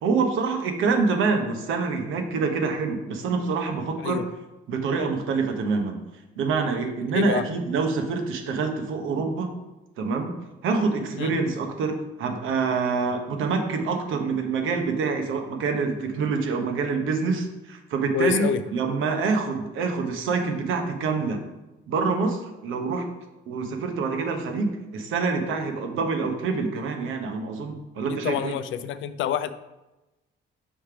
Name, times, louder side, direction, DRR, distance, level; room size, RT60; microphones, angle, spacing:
voice 1, 0.0-4.2 4.7-6.0 6.4-9.5 10.0-10.3 10.6-21.4 21.9-23.1 23.5-28.5, right 4 dB, 85° right, 5 dB, 0.9 m, -26 dB
voice 2, 7.1-7.4 11.2-11.3 18.1-18.6 28.1-29.5, left 9 dB, 75° left, 12 dB, 0.5 m, -27 dB
5.6 x 3.3 x 5.7 m, 1.0 s
cardioid pair, 90°, 20 cm